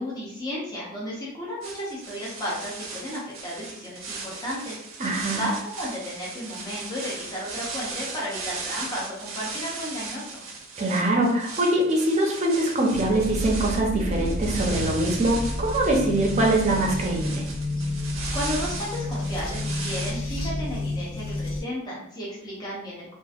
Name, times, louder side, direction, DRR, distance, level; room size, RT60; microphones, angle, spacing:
voice 1, 0.0-4.8 5.3-10.4 18.3-23.1, equal, 20° left, -6 dB, 0.6 m, -33 dB
sound 1, 1.6-20.1, right 4 dB, 75° right, 0.5 m, -37 dB
voice 2, 5.0-5.4 10.8-17.4, right 1 dB, 35° right, 0 dB, 0.5 m, -23 dB
sound 2, 12.9-21.6, left 1 dB, 80° left, 0.7 m, -30 dB
2.8 x 2.5 x 2.4 m, 0.78 s
head